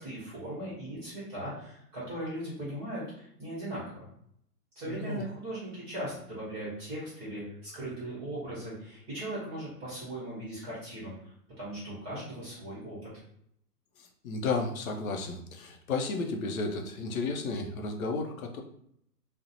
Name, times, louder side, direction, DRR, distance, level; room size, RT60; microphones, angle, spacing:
voice 1, 0.0-4.1 4.7-13.0, right 1 dB, 20° right, -8 dB, 0.9 m, -39 dB
voice 2, 4.9-5.2 14.0-18.6, left 3 dB, 60° left, 3 dB, 0.6 m, -33 dB
2.6 x 2.1 x 2.7 m, 0.72 s
hypercardioid pair, 135°, 49 cm